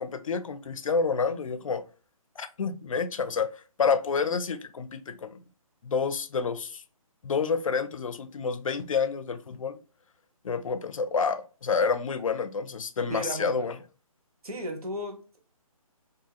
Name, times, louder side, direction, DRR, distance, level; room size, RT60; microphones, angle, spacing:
voice 1, 0.0-1.8 2.4-3.5 3.8-5.4 5.8-6.8 7.2-9.8 10.4-13.8, left 5 dB, 65° left, 0.4 m, -28 dB
voice 2, 13.1-13.7 14.4-15.4, equal, 90° right, 1.1 m, -35 dB
2.8 x 2.7 x 2.2 m
hypercardioid pair, 175°, 18 cm